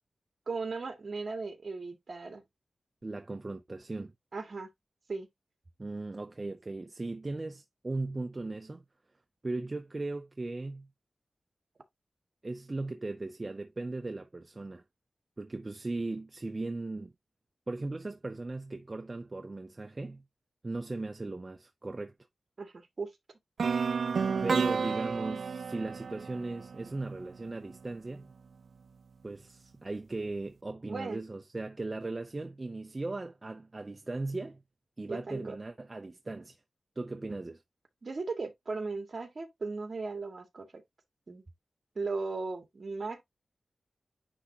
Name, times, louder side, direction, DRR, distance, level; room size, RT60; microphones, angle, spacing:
voice 1, 0.5-2.4 4.3-4.7 5.1-5.3 22.6-23.1 30.8-31.2 35.1-35.6 37.3-37.4 38.0-40.8 41.3-41.4 42.0-43.2, right 4 dB, 45° right, 2.0 m, -37 dB
voice 2, 3.0-4.1 5.8-8.8 9.4-10.9 12.4-14.8 15.4-17.1 17.7-20.2 20.6-22.1 24.4-28.3 29.2-34.6 35.0-36.6 37.0-37.6, right 2 dB, 25° right, 0.6 m, -37 dB
sound 1, 23.6-27.6, right 5 dB, 70° right, 0.3 m, -31 dB
9.9 x 3.4 x 2.8 m
wide cardioid pair, 135°, 0 cm